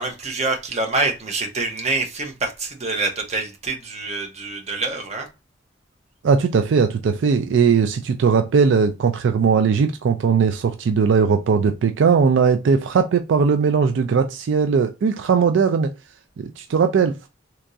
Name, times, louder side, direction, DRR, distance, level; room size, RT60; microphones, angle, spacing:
voice 1, 0.0-5.3, right 3 dB, 35° right, 0.9 m, -26 dB
voice 2, 6.2-15.9 16.4-17.2, right 5 dB, 75° right, 0.4 m, -19 dB
3.4 x 2.9 x 2.6 m
head